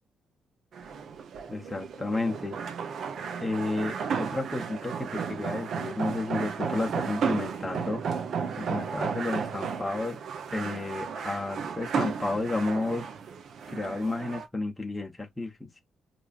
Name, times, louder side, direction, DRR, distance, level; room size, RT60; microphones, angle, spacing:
sound 1, 0.7-14.5, right 6 dB, 65° right, 0.6 m, -34 dB
voice 1, 1.5-2.6 3.4-8.0 8.6-10.2 10.5-13.1 13.7-15.8, left 2 dB, 15° left, 0.9 m, -32 dB
4.7 x 2.6 x 2.4 m
cardioid pair, 90°, 0 cm